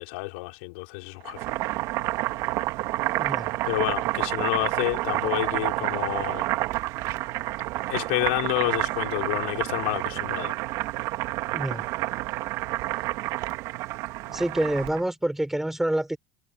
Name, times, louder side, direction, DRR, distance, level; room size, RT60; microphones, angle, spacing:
voice 1, 0.0-1.4 3.6-6.5 7.9-10.5, left 27 dB, 80° left, 4.4 m, -29 dB
Boiling, 1.2-15.0, right 18 dB, 65° right, 2.3 m, -29 dB
voice 2, 3.2-3.5 11.5-11.8 14.3-16.2, right 1 dB, 5° right, 5.4 m, -27 dB
supercardioid pair, 95°, 6 cm